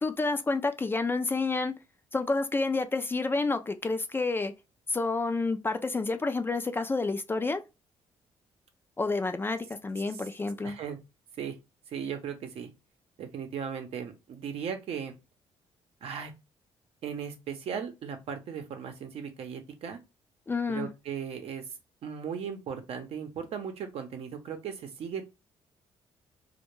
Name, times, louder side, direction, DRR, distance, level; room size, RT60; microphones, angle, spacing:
voice 1, 0.0-1.7 2.1-4.5 4.9-7.6 9.0-10.8 20.5-20.9, left 3 dB, 20° left, 0.3 m, -29 dB
voice 2, 10.6-11.0 11.4-11.6 11.9-12.7 13.2-15.1 16.0-16.3 17.0-20.0 20.7-21.7 22.0-25.3, right 7 dB, 70° right, 0.7 m, -37 dB
2.2 x 2.2 x 3.0 m
cardioid pair, 85°, 11 cm